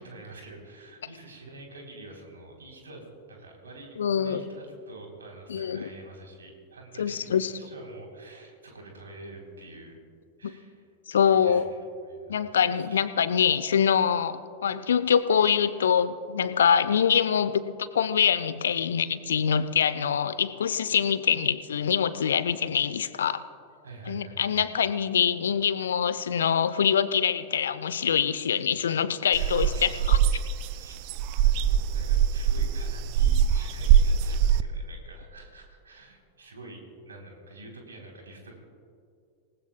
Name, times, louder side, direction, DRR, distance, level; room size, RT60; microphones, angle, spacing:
voice 1, 0.0-10.0 10.4-10.8 11.3-11.8 12.1-13.0 23.8-24.6 29.3-30.1 30.6-30.9 31.4-38.6, right 2 dB, 70° right, 1 dB, 3.6 m, -46 dB
voice 2, 4.0-4.4 5.5-5.9 7.0-7.5 10.4-10.5 11.1-11.7 12.3-17.6 17.9-23.4 24.1-30.2, left 7 dB, 65° left, 14 dB, 0.6 m, -24 dB
sound 1, 29.3-34.6, right 9 dB, 45° right, 0.5 m, -22 dB
27.0 x 19.0 x 2.3 m, 2.4 s
figure-of-eight pair, 90°, 0 cm